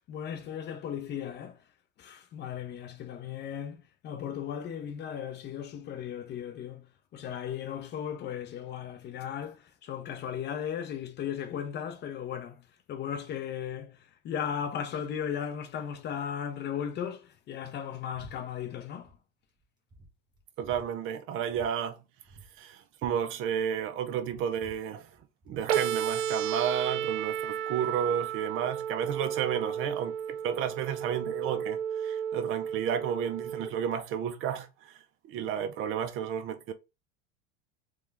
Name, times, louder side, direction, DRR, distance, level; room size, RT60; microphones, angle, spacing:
voice 1, 0.1-1.6 2.0-3.8 4.0-6.8 7.1-12.6 12.9-14.0 14.2-19.1, left 8 dB, 30° left, 0.7 m, -36 dB
sound 1, 18.1-18.4 18.6-19.2 19.6-19.7 19.9-20.9 21.5-21.7 22.0-22.1 22.2-23.9 24.2-25.7, right 2 dB, 15° right, 1.3 m, -52 dB
voice 2, 20.6-22.0 22.6-25.1 25.5-35.0 35.3-36.7, right 8 dB, 40° right, 0.6 m, -32 dB
sound 2, 25.7-33.7, right 9 dB, 80° right, 0.7 m, -33 dB
3.5 x 3.5 x 3.3 m
supercardioid pair, 130°, 33 cm